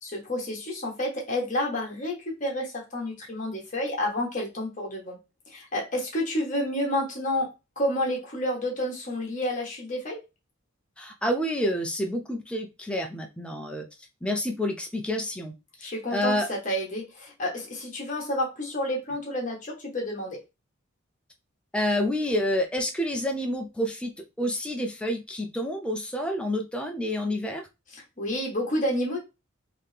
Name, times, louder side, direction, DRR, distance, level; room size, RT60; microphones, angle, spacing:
voice 1, 0.0-5.2 5.5-7.5 7.8-10.2 15.8-20.4 27.9-29.2, left 1 dB, 35° left, 1.3 m, -30 dB
voice 2, 11.0-13.8 14.2-15.5 15.8-16.5 21.7-24.1 24.4-27.6, left 1 dB, 5° left, 0.4 m, -28 dB
3.7 x 2.8 x 3.3 m
head